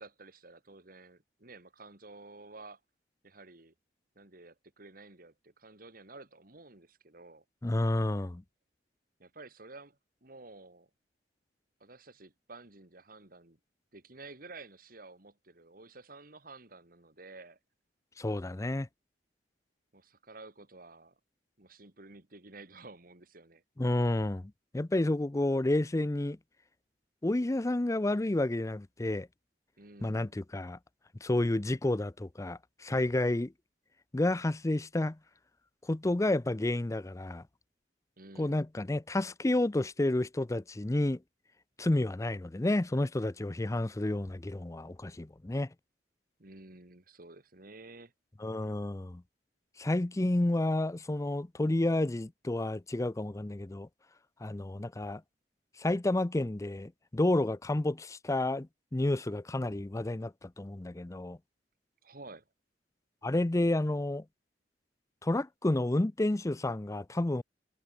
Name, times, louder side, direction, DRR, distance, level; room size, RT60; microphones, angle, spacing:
voice 1, 0.0-2.8 3.2-3.7 4.2-7.4 9.2-10.9 11.8-13.6 13.9-17.6 19.9-21.2 21.6-23.6 29.8-30.3 38.2-38.7 46.4-48.1 62.0-62.5, right 3 dB, 55° right, 2.6 m, -52 dB
voice 2, 7.6-8.4 18.2-18.9 23.8-26.4 27.2-29.3 30.0-30.8 31.2-33.5 34.1-35.2 35.9-37.4 38.4-41.2 41.8-45.7 48.4-49.2 49.8-53.9 54.4-55.2 55.8-61.4 63.2-64.2 65.2-67.4, left 1 dB, 20° left, 0.5 m, -30 dB
head